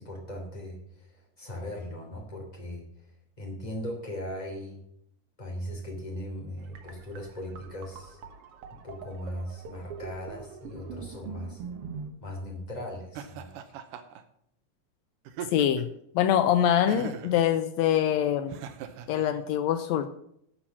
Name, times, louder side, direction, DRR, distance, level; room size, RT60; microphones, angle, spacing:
voice 1, 0.0-2.8 3.4-4.8 5.4-8.2 8.7-11.6 12.2-13.6, equal, 15° left, 0 dB, 2.6 m, -38 dB
sound 1, 6.6-12.1, right 5 dB, 55° right, 1.7 m, -43 dB
Laughter, 13.2-14.2 15.3-16.0 16.9-17.4 18.5-19.3, right 8 dB, 80° right, 2.4 m, -39 dB
voice 2, 15.5-15.9 16.1-18.6 19.1-20.2, left 10 dB, 90° left, 10 dB, 1.6 m, -24 dB
11.5 x 5.6 x 7.4 m, 0.72 s
omnidirectional pair, 3.8 m